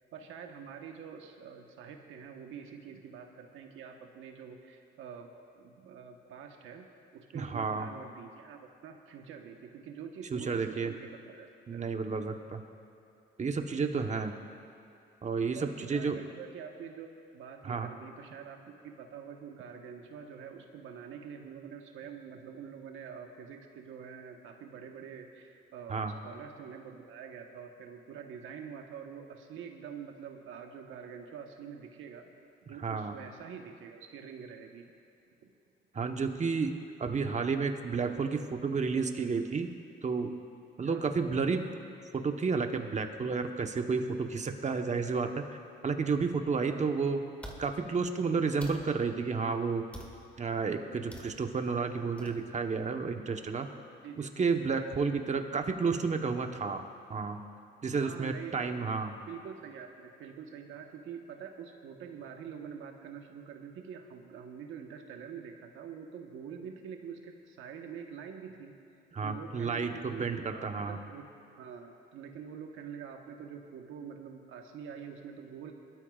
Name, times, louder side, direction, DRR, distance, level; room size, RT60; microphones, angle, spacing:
voice 1, 0.1-11.8 13.6-14.3 15.6-32.3 32.7-34.9 35.4-35.5 40.8-41.1 46.2-46.9 54.0-54.3 58.0-59.0 59.3-68.7 69.2-70.3 70.5-71.2 71.6-75.7, right 7 dB, 85° right, 3 dB, 1.2 m, -46 dB
voice 2, 7.3-7.9 10.3-10.9 11.7-12.6 13.4-14.3 15.2-16.2 17.6-17.9 25.9-26.2 32.8-33.1 35.9-39.7 40.0-40.3 40.8-41.7 42.1-45.4 45.8-47.2 47.6-49.8 50.4-53.7 54.2-56.8 57.1-57.4 57.8-59.1 69.1-71.0, right 5 dB, 35° right, 5 dB, 1.1 m, -31 dB
sound 1, 46.6-46.7 47.4-47.6 48.6-48.8 49.9-50.2 51.1-51.3 52.2-52.4, equal, 5° left, 1.9 m, -45 dB
21.5 x 12.5 x 2.4 m, 2.8 s
cardioid pair, 90°, 20 cm